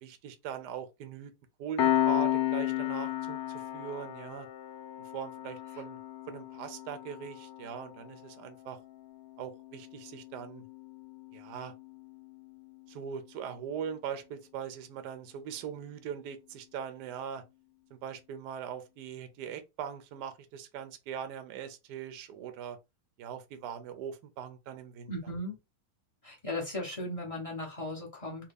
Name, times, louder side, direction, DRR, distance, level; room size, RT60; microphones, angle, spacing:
voice 1, 0.0-1.3 1.6-4.5 5.1-6.0 6.3-8.8 9.4-10.7 11.3-11.7 12.9-17.4 17.9-22.8 23.2-25.1, right 8 dB, 70° right, 1.1 m, -41 dB
Piano, 1.8-12.9, left 12 dB, 70° left, 0.9 m, -34 dB
voice 2, 25.1-25.6 26.2-28.5, left 1 dB, 40° left, 0.4 m, -37 dB
3.5 x 2.2 x 3.3 m
omnidirectional pair, 2.2 m